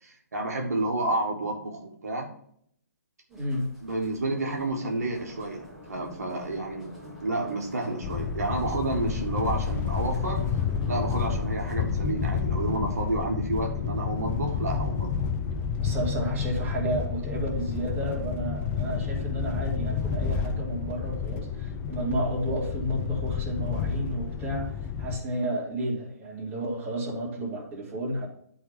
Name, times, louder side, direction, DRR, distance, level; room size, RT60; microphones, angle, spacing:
voice 1, 0.0-2.3 3.8-6.9 7.2-10.4 10.9-15.3, right 2 dB, 65° right, 0 dB, 1.8 m, -30 dB
sound 1, 3.3-11.8, equal, ahead, 2.0 m, -46 dB
voice 2, 3.3-3.7 15.8-28.3, right 1 dB, 20° right, -4 dB, 2.7 m, -32 dB
sound 2, 8.0-25.2, left 6 dB, 20° left, 0.6 m, -30 dB
10.5 x 4.0 x 5.1 m, 0.67 s
figure-of-eight pair, 135°, 9 cm